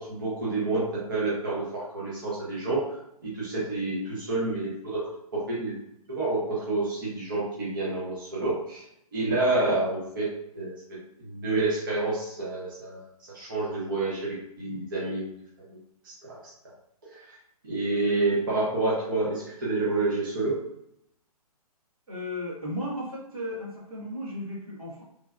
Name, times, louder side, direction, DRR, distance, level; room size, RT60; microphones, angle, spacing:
voice 1, 0.0-3.0 3.2-5.8 6.1-8.8 9.1-10.7 11.2-13.0 13.3-15.3 16.0-16.4 17.1-17.2 17.7-20.7, right 2 dB, 35° right, -7 dB, 0.6 m, -28 dB
voice 2, 22.1-25.0, left 1 dB, 65° right, -5 dB, 1.4 m, -35 dB
3.2 x 2.2 x 2.3 m, 0.76 s
hypercardioid pair, 180°, 20 cm